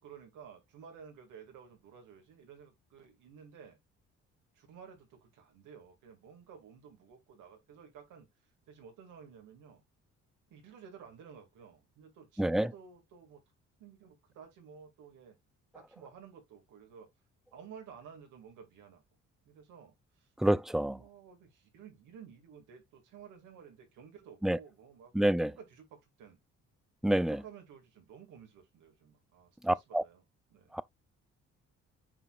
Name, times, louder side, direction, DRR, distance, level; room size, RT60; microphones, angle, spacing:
voice 1, 0.0-3.8 4.5-8.3 8.7-9.8 10.5-13.4 13.8-15.4 15.7-17.1 17.5-19.0 19.4-20.3 20.9-25.1 25.4-26.4 27.3-30.2 30.5-30.8, right 7 dB, 90° right, 2.3 m, -53 dB
voice 2, 12.4-12.7 20.4-21.0 24.4-24.6 25.1-25.5 27.0-27.4 29.6-30.0 30.7-30.8, right 1 dB, ahead, 0.3 m, -27 dB
8.7 x 4.9 x 2.4 m
cardioid pair, 90°, 30 cm